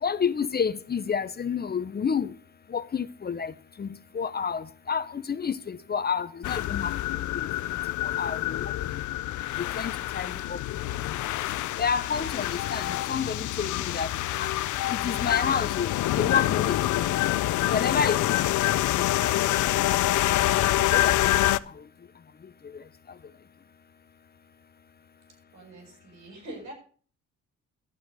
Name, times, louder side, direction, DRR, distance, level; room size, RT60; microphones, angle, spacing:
voice 1, 0.0-2.3 2.7-6.9 7.3-7.5 8.0-9.0 9.6-10.6 11.8-14.1 14.4-14.5 14.9-17.1 17.7-18.5 18.9-19.4 20.5-20.6 20.9-21.3 21.7-21.8 22.7-22.8, left 6 dB, 30° left, 0.7 m, -30 dB
sound 1, 6.4-21.6, left 15 dB, 75° left, 0.6 m, -26 dB
voice 2, 25.5-26.7, right 1 dB, 75° right, 7.4 m, -43 dB
12.0 x 7.7 x 6.8 m
cardioid pair, 90°, 30 cm